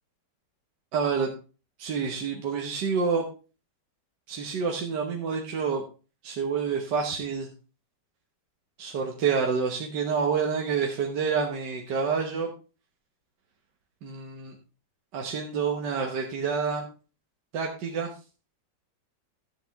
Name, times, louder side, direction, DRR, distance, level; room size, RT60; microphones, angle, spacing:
voice 1, 0.9-1.3 1.8-3.3 4.3-5.8 6.2-7.5 8.8-12.5 14.0-14.6 15.1-16.9 17.5-18.1, right 5 dB, 75° right, 1 dB, 1.7 m, -28 dB
12.0 x 8.0 x 3.5 m, 0.34 s
omnidirectional pair, 1.9 m